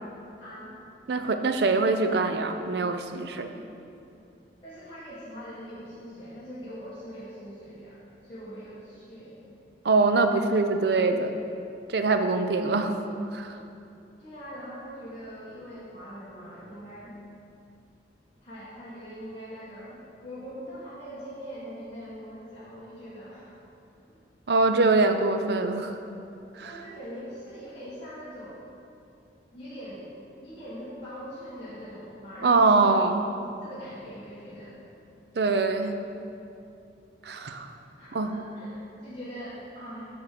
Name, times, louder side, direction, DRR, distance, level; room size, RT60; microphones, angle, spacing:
voice 1, 0.4-0.7 4.6-9.5 14.2-17.1 18.4-23.5 26.6-28.6 29.5-30.0 30.4-33.1 33.6-34.8 38.0-40.1, equal, 30° left, -12 dB, 1.4 m, -42 dB
voice 2, 1.1-3.5 9.8-11.3 11.9-12.9 13.3-13.6 24.5-26.0 26.6-26.7 32.4-33.2 35.4-35.9 37.2-37.7 38.1-38.3, right 3 dB, 70° right, 7 dB, 0.5 m, -23 dB
9.0 x 3.5 x 6.6 m, 2.7 s
head